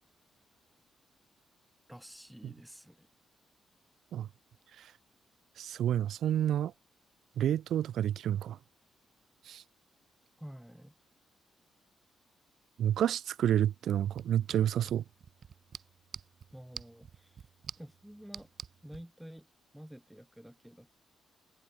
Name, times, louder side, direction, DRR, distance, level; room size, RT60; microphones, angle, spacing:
voice 1, 1.9-3.1 10.4-10.9 16.5-17.4 17.8-18.5 18.8-19.5 19.7-20.9, equal, 5° right, 7.7 m, -50 dB
voice 2, 5.6-6.7 7.4-8.6 9.4-9.6 12.8-15.0, right 10 dB, 80° right, 0.4 m, -29 dB
sound 1, 14.1-19.0, right 7 dB, 55° right, 1.6 m, -49 dB
cardioid pair, 125°, 0 cm